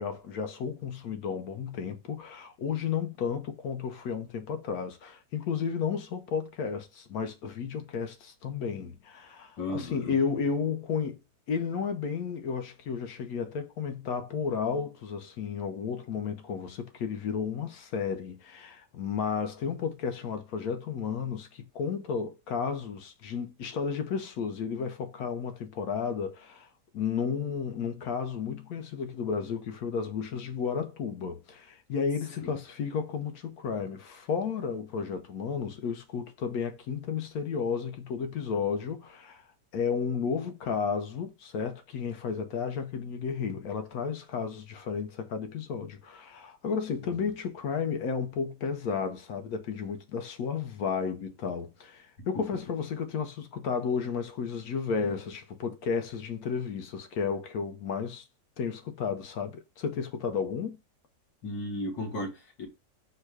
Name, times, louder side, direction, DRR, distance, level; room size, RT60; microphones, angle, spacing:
voice 1, 0.0-11.2 11.5-26.7 26.9-39.5 39.7-58.3 58.6-60.8, left 6 dB, 65° left, 1.0 m, -33 dB
voice 2, 9.6-10.2 32.4-32.5 61.4-62.7, left 1 dB, 85° left, 2.3 m, -35 dB
4.5 x 2.1 x 4.6 m
omnidirectional pair, 1.9 m